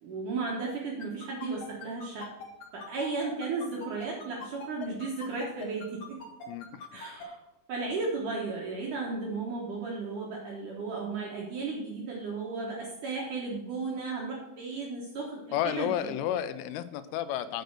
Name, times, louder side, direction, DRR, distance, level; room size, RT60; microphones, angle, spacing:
voice 1, 0.0-2.3 2.7-6.2 6.9-7.4 7.7-16.1, right 3 dB, 70° right, -2 dB, 1.9 m, -34 dB
sound 1, 1.0-7.3, left 4 dB, 60° left, 2.0 m, -42 dB
voice 2, 6.5-6.9 15.5-17.6, left 11 dB, 90° left, 11 dB, 3.1 m, -32 dB
7.7 x 6.6 x 6.5 m, 1.0 s
omnidirectional pair, 5.5 m